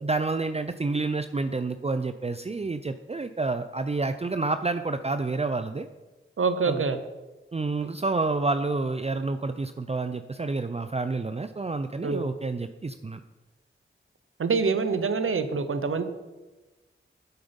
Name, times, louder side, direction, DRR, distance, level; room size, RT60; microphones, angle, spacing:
voice 1, 0.0-5.9 6.6-6.8 7.5-13.2, right 3 dB, 30° right, 10 dB, 0.5 m, -29 dB
voice 2, 6.4-7.0 12.0-12.2 14.4-16.0, right 5 dB, 80° right, 10 dB, 0.8 m, -25 dB
9.7 x 7.9 x 5.2 m, 1.1 s
cardioid pair, 40°, 21 cm